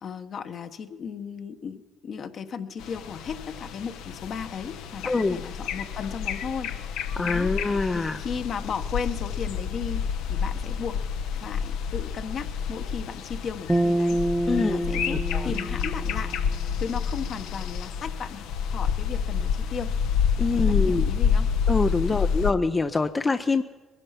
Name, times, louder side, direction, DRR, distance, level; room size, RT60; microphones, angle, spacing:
voice 1, 0.0-10.0 10.3-11.0 11.3-14.2 14.6-19.9 20.5-21.5 22.1-22.3, left 6 dB, 50° left, 7 dB, 1.2 m, -36 dB
sound 1, 2.8-22.5, left 7 dB, 80° left, 0.9 m, -29 dB
voice 2, 5.1-5.4 7.2-8.2 14.5-14.8 15.1-15.5 20.4-21.0 21.7-23.6, left 3 dB, 25° left, 8 dB, 0.6 m, -25 dB
sound 2, 13.7-17.0, right 1 dB, 10° right, 1.0 m, -27 dB
21.5 x 11.0 x 5.8 m, 1.3 s
supercardioid pair, 70°, 0 cm